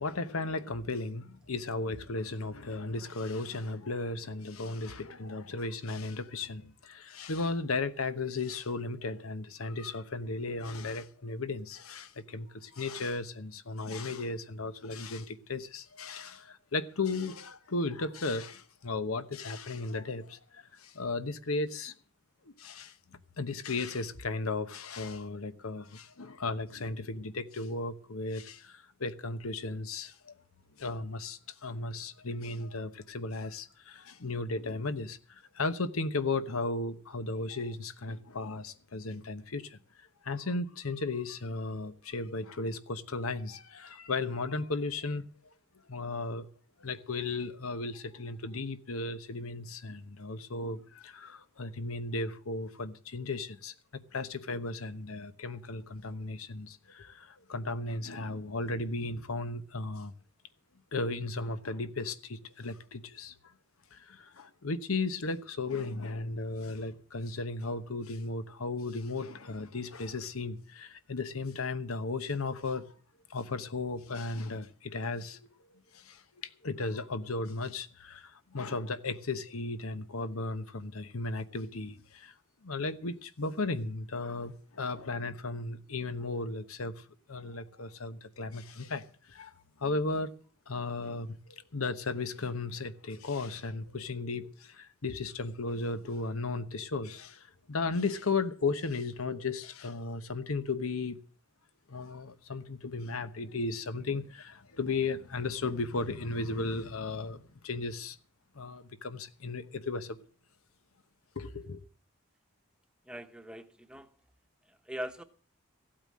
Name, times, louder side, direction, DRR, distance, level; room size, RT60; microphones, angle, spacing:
voice 1, 0.0-21.9 22.4-23.0 23.4-30.4 30.8-45.2 45.9-46.5 46.8-53.7 54.1-60.1 60.9-63.3 63.9-72.9 73.3-75.4 75.7-82.3 82.6-89.5 89.8-90.3 90.7-101.2 101.9-108.2 108.5-110.2 111.3-111.8, left 3 dB, 85° left, 1.0 m, -35 dB
voice 2, 113.0-114.1 114.7-115.2, equal, 5° right, 1.0 m, -41 dB
15.0 x 8.9 x 7.4 m
head